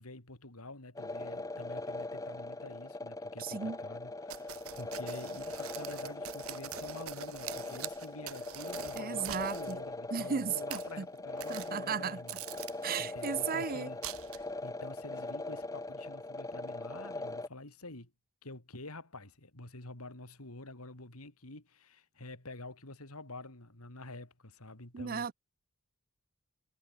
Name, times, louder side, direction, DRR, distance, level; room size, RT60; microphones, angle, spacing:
voice 1, 0.0-12.4 13.0-14.0 14.3-18.1 18.4-25.3, left 2 dB, 80° left, 3.9 m, -48 dB
sound 1, 1.0-17.5, left 2 dB, 15° left, 1.3 m, -41 dB
voice 2, 3.4-3.8 9.0-9.8 10.1-11.1 11.5-12.2 12.8-13.9 24.9-25.3, right 6 dB, 45° right, 0.6 m, -35 dB
sound 2, 4.3-9.8 10.5-10.9 11.4-12.0 12.3-13.3 14.0-14.6, right 10 dB, 70° right, 1.1 m, -44 dB
head